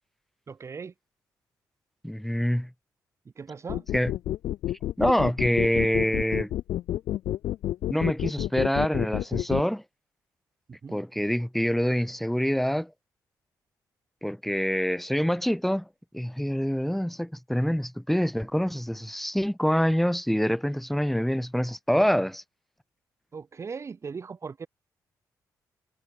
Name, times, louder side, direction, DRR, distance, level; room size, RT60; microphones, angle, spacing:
voice 1, 0.5-0.9 3.4-3.9 10.8-11.0 23.3-24.7, right 5 dB, 40° right, 5.2 m, -38 dB
voice 2, 2.0-2.7 3.9-4.1 5.0-6.5 7.9-9.8 10.9-12.9 14.2-15.9 16.1-22.4, equal, 5° left, 4.7 m, -26 dB
sound 1, 3.7-9.6, left 13 dB, 85° left, 0.9 m, -29 dB
cardioid pair, 85°, 7 cm